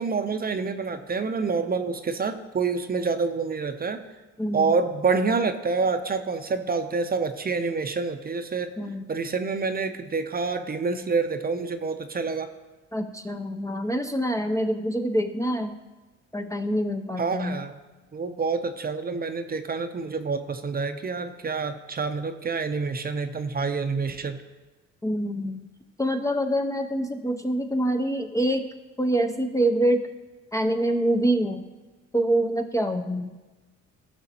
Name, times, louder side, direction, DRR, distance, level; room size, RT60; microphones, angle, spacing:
voice 1, 0.0-4.0 4.5-8.7 9.1-12.5 17.2-17.8 18.1-24.4, right 4 dB, 30° right, 8 dB, 0.6 m, -27 dB
voice 2, 4.4-4.8 8.8-9.0 12.9-15.8 16.3-17.6 25.0-25.6 26.0-28.7 29.0-30.1 30.5-31.7 32.1-33.3, right 1 dB, 10° left, 5 dB, 0.5 m, -25 dB
15.5 x 5.8 x 2.9 m, 1.2 s
cardioid pair, 90°, 30 cm